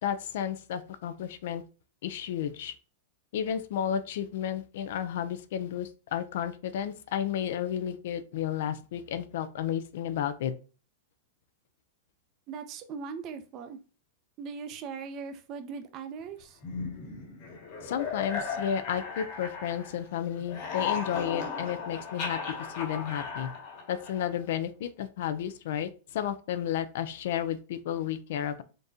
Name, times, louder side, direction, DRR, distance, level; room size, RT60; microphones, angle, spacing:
voice 1, 0.0-1.6 2.0-2.7 3.3-10.5 17.8-22.4 22.8-23.5 23.9-28.6, left 9 dB, 65° left, 0.5 m, -32 dB
voice 2, 12.5-13.8 14.4-16.6, right 5 dB, 35° right, 0.6 m, -39 dB
sound 1, 16.6-20.1 20.4-24.4, left 5 dB, 50° left, 1.6 m, -36 dB
3.9 x 3.5 x 2.7 m
supercardioid pair, 150°, 0 cm